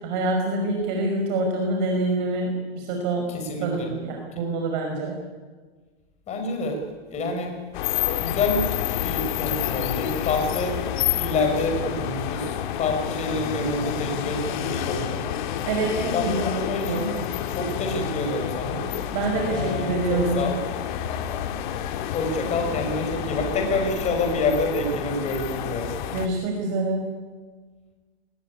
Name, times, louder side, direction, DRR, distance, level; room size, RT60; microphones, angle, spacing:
voice 1, 0.0-3.3 3.6-5.2 15.6-16.4 16.8-17.2 19.1-20.5 26.1-27.1, right 2 dB, 45° right, 2 dB, 5.5 m, -26 dB
voice 2, 3.3-3.9 4.3-4.4 6.3-6.8 7.1-7.5 7.8-8.7 8.9-10.8 11.1-15.2 16.1-17.1 17.5-18.8 19.5-20.6 22.1-25.9, left 2 dB, 20° left, 4 dB, 5.8 m, -27 dB
sound 1, 7.7-26.3, left 10 dB, 45° left, 2.3 m, -29 dB
23.0 x 20.0 x 9.9 m, 1.4 s
hypercardioid pair, 150°, 32 cm